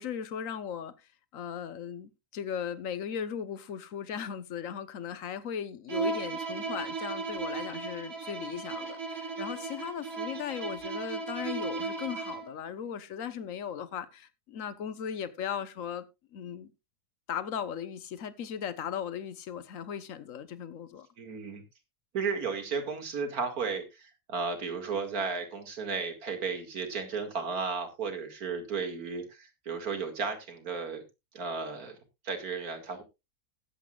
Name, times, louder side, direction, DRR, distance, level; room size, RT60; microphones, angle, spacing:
voice 1, 0.0-16.0 16.3-16.7 17.3-21.1, left 8 dB, 60° left, 1.3 m, -37 dB
Bowed string instrument, 5.9-12.6, right 4 dB, 40° right, 1.7 m, -36 dB
voice 2, 21.2-21.6 22.1-31.0 31.3-32.0 32.2-33.0, right 5 dB, 70° right, 2.6 m, -34 dB
19.5 x 8.1 x 2.4 m
omnidirectional pair, 1.6 m